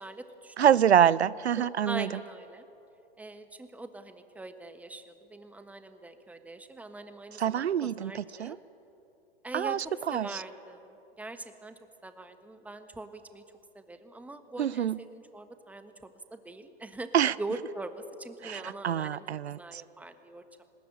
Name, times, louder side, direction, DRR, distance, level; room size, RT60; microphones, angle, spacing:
voice 1, 0.0-0.9 1.5-2.6 3.2-8.6 9.4-13.4 13.7-17.1 17.4-19.2 19.6-20.6, right 2 dB, 5° right, 8 dB, 1.3 m, -42 dB
voice 2, 0.6-2.1 7.4-8.6 9.5-10.4 14.6-15.0 17.1-17.3 18.4-19.8, right 9 dB, 85° right, 20 dB, 0.5 m, -26 dB
21.5 x 20.0 x 8.7 m, 3.0 s
figure-of-eight pair, 110°, 32 cm